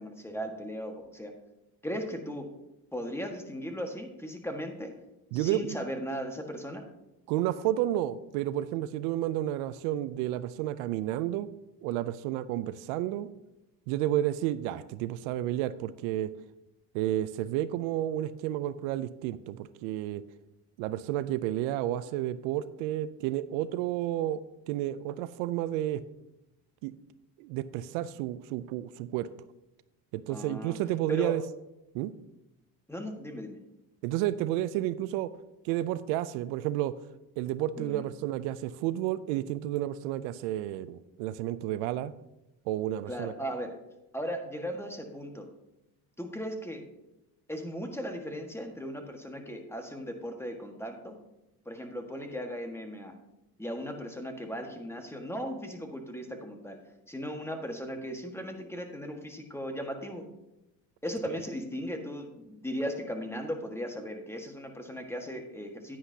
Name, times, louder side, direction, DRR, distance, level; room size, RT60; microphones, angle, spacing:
voice 1, 0.0-1.3 1.8-2.5 2.9-4.9 5.3-6.8 30.3-30.8 31.1-31.4 32.9-33.6 37.8-38.1 43.1-43.7 44.1-45.5 46.2-46.8 47.5-51.2 51.6-53.1 53.6-56.8 57.1-60.3 61.0-66.0, equal, 5° left, 4 dB, 1.5 m, -37 dB
voice 2, 5.3-5.8 7.3-11.5 11.8-13.3 13.9-16.3 16.9-20.2 20.8-24.4 24.7-26.0 26.8-26.9 27.4-29.3 30.1-31.4 31.9-32.1 34.0-35.3 35.6-36.9 37.4-42.1 42.7-43.3, right 13 dB, 85° right, 15 dB, 0.5 m, -31 dB
10.0 x 9.5 x 2.8 m, 0.93 s
supercardioid pair, 75°, 45 cm